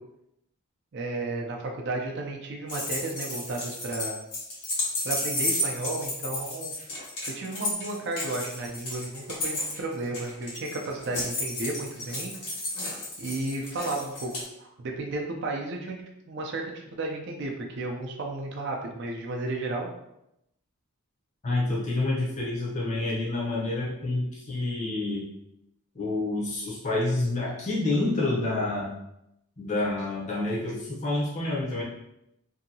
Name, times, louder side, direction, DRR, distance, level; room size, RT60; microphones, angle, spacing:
voice 1, 0.9-4.2 5.0-6.7 7.3-12.3 13.2-14.3 14.6-16.0 16.3-19.9, right 2 dB, 50° right, 1 dB, 0.4 m, -33 dB
sound 1, 2.7-14.4, left 1 dB, 90° left, 1.3 m, -32 dB
voice 2, 21.4-25.2 25.9-28.9 29.6-31.8, left 2 dB, 30° left, -3 dB, 0.7 m, -28 dB
2.7 x 2.7 x 2.7 m, 0.83 s
head